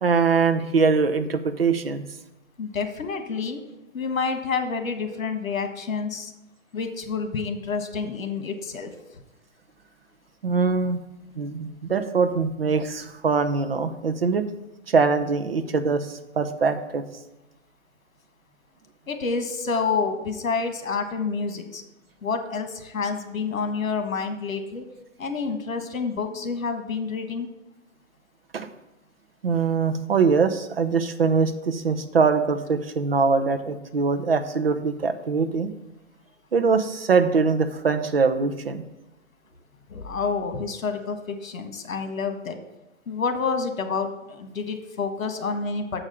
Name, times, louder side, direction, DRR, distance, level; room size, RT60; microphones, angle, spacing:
voice 1, 0.0-2.0 10.4-11.0 11.4-14.4 14.9-17.0 28.5-28.7 29.4-35.7 36.5-38.8, right 5 dB, 45° right, 10 dB, 0.7 m, -22 dB
voice 2, 2.6-3.6 3.9-6.3 6.7-8.9 19.1-21.8 22.2-24.9 25.2-27.5 39.9-42.6 43.1-46.0, left 5 dB, 80° left, 7 dB, 1.5 m, -28 dB
7.2 x 5.0 x 6.7 m, 0.99 s
hypercardioid pair, 175°, 40 cm